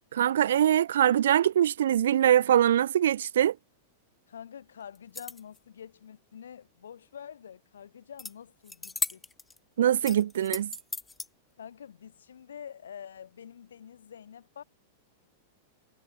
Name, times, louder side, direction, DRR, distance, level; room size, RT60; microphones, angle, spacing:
voice 1, 0.1-3.5 9.8-10.7, right 10 dB, 75° right, 0.4 m, -23 dB
voice 2, 4.3-9.3 11.6-14.6, left 8 dB, 80° left, 7.8 m, -46 dB
sound 1, 4.9-5.6 8.2-8.3 8.6-9.6 10.0-11.3, left 3 dB, 10° left, 0.6 m, -36 dB
hypercardioid pair, 105°, 0 cm